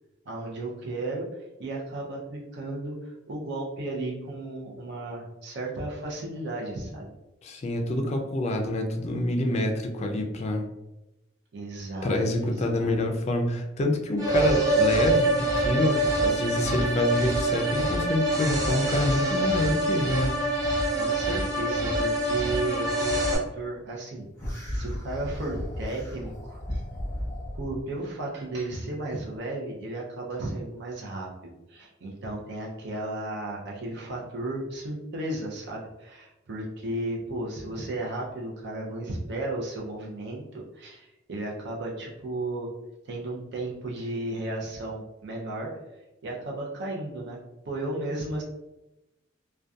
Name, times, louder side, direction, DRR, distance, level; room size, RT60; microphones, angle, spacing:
voice 1, 0.3-1.3 1.6-7.1 11.5-13.0 20.9-24.2 24.7-26.8 27.5-42.7 43.1-45.7 46.2-47.4 47.7-48.4, right 2 dB, 60° right, -2 dB, 0.5 m, -34 dB
voice 2, 7.4-10.7 12.0-20.3, left 1 dB, 35° left, 2 dB, 0.3 m, -27 dB
sound 1, 14.2-23.4, right 1 dB, 20° right, 0.6 m, -25 dB
sound 2, 24.4-27.8, equal, 15° left, 1.0 m, -34 dB
2.6 x 2.2 x 2.3 m, 0.96 s
head